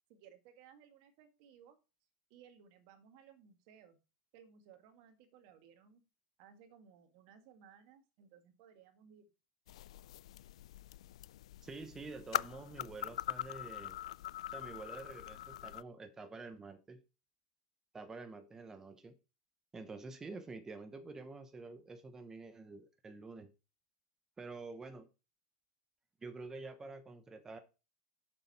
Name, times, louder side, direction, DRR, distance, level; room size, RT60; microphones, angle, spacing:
voice 1, 0.1-1.8 2.3-4.0 4.3-6.0 6.4-9.3, right 8 dB, 60° right, 2.0 m, -61 dB
sound 1, 9.7-15.8, left 13 dB, 80° left, 0.3 m, -42 dB
voice 2, 11.6-14.0 14.5-17.0 17.9-19.2 19.7-23.5 24.4-25.1 26.2-27.6, right 3 dB, 15° right, 0.9 m, -48 dB
7.6 x 6.8 x 4.3 m
supercardioid pair, 120°, 3 cm